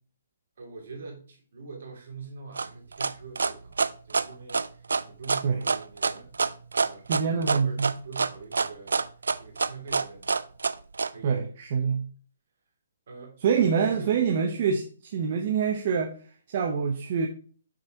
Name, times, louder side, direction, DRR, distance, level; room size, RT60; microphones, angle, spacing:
voice 1, 0.6-9.0 9.4-10.4 11.1-11.5 13.1-14.2, right 4 dB, 65° right, 2.7 m, -44 dB
sound 1, 2.6-11.1, right 4 dB, 85° right, 0.4 m, -26 dB
voice 2, 7.1-7.9 11.2-12.1 13.4-16.2 16.5-17.3, right 6 dB, 45° right, 0.8 m, -25 dB
6.2 x 4.2 x 4.4 m
hypercardioid pair, 150°, 0 cm